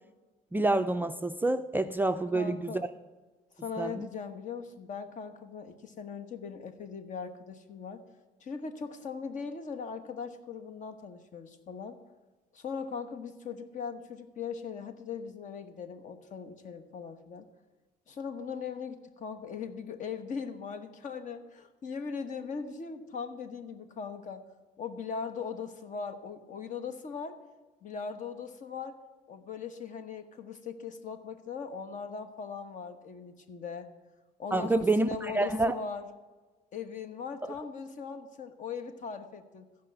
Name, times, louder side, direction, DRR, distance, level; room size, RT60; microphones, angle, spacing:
voice 1, 0.5-2.9 3.8-4.1 34.5-35.8 37.4-37.5, right 2 dB, 10° right, 8 dB, 0.4 m, -28 dB
voice 2, 2.3-2.8 3.6-8.0 8.4-12.0 12.5-17.5 18.1-24.4 24.8-27.4 27.8-29.0 29.3-33.9 34.4-36.0 36.7-39.6, left 6 dB, 50° left, 10 dB, 1.2 m, -39 dB
15.0 x 5.4 x 7.9 m, 1.3 s
cardioid pair, 110°, 17 cm